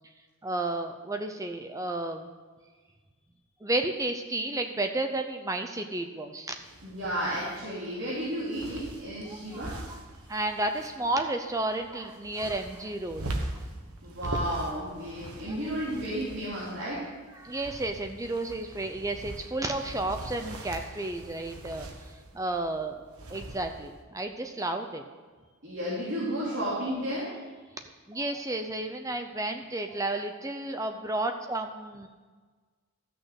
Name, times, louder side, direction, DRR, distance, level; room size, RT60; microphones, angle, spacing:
voice 1, 0.4-2.3 3.6-6.5 9.3-10.0 10.3-13.3 15.5-15.6 17.3-23.0 23.3-25.0 26.7-26.9 28.1-32.1, right 2 dB, 15° right, 6 dB, 0.6 m, -32 dB
sound 1, 6.5-24.0, right 1 dB, 80° right, 1.3 m, -42 dB
voice 2, 6.8-9.7 14.0-17.0 25.6-27.3, equal, 55° right, -8 dB, 3.1 m, -32 dB
13.5 x 6.4 x 6.4 m, 1.4 s
head